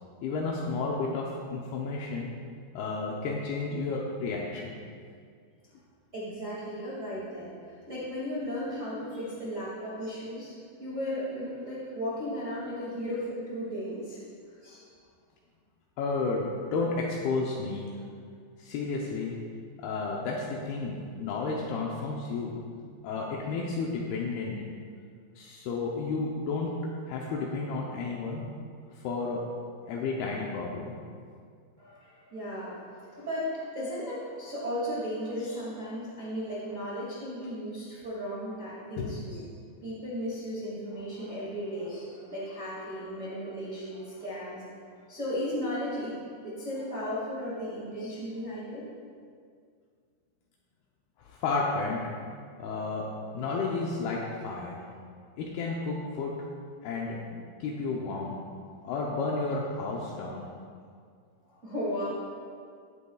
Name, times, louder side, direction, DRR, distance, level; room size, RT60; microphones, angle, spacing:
voice 1, 0.2-2.3 2.8-4.8 16.0-17.9 18.6-19.3 19.8-22.6 23.0-24.6 25.4-26.8 27.1-28.4 29.0-29.4 29.9-31.0 39.0-39.2 51.3-52.0 52.6-53.1 53.3-54.8 55.4-56.3 56.8-58.4 58.8-60.5, left 3 dB, 80° left, -3 dB, 2.2 m, -32 dB
voice 2, 6.1-7.5 7.8-10.5 10.8-14.2 14.6-14.8 31.8-32.8 33.1-39.4 39.8-44.6 45.1-48.8 61.5-62.1, equal, 45° right, -8 dB, 0.9 m, -35 dB
16.5 x 8.3 x 2.3 m, 2.2 s
omnidirectional pair, 5.4 m